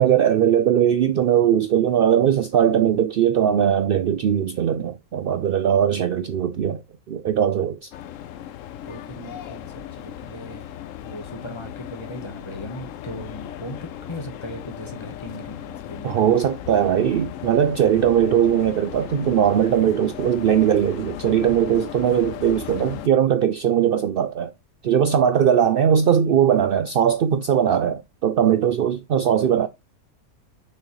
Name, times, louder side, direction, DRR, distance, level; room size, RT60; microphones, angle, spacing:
voice 1, 0.0-6.8 7.1-7.9 16.0-24.5 24.8-29.7, right 9 dB, 80° right, 0.5 m, -20 dB
sound 1, 7.9-23.1, left 11 dB, 70° left, 0.9 m, -37 dB
voice 2, 8.8-10.7 11.0-16.4 22.6-22.9, equal, 20° left, 1.1 m, -38 dB
6.5 x 6.2 x 3.1 m
omnidirectional pair, 1.6 m